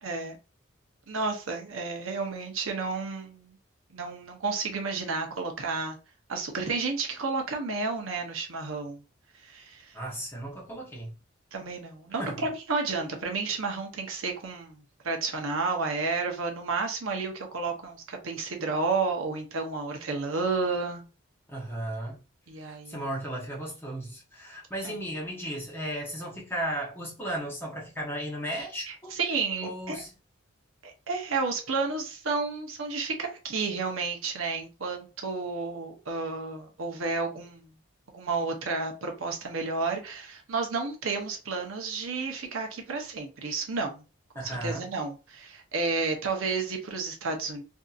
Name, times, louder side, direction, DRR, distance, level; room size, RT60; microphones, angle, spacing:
voice 1, 0.0-0.4 1.1-3.6 3.9-6.0 6.3-9.0 9.4-10.0 11.5-21.0 22.5-23.1 24.8-24.9 28.6-30.0 30.8-37.7 38.1-44.0 44.4-47.6, right 4 dB, 80° right, 0.7 m, -31 dB
voice 2, 9.9-11.1 12.2-12.4 21.5-22.2 22.9-29.1 29.6-30.1 44.3-44.9, right 1 dB, 10° left, 0.9 m, -35 dB
2.7 x 2.5 x 2.4 m
head